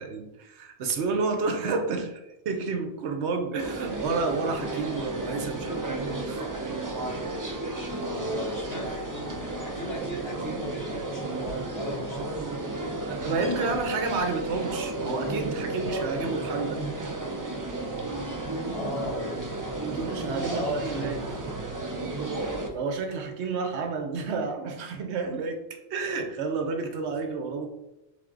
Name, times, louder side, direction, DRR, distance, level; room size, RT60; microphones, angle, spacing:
voice 1, 0.0-5.8 6.2-6.4 13.1-16.8 19.8-21.4 22.7-27.7, right 4 dB, 80° right, 5 dB, 1.0 m, -30 dB
sound 1, 3.6-22.7, right 2 dB, 30° right, 0.4 m, -33 dB
voice 2, 7.9-12.5 13.5-13.7 18.7-19.4 20.0-21.6 22.0-22.2, equal, 60° left, -4 dB, 1.7 m, -36 dB
3.8 x 3.5 x 3.7 m, 0.94 s
omnidirectional pair, 1.2 m